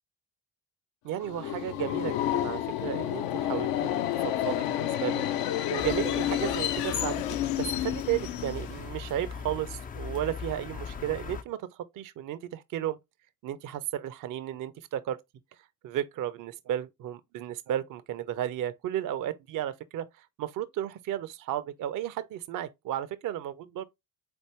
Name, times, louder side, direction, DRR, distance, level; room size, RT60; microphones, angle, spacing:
voice 1, 1.0-5.2 5.7-11.7 11.9-13.0 13.4-15.2 15.8-23.8, right 11 dB, 45° right, 0.5 m, -34 dB
Subway metro underground, 1.2-8.9, left 12 dB, 60° left, 0.6 m, -30 dB
sound 1, 5.8-11.4, left 6 dB, 20° left, 0.3 m, -40 dB
4.0 x 3.3 x 3.0 m
figure-of-eight pair, 40°, 48 cm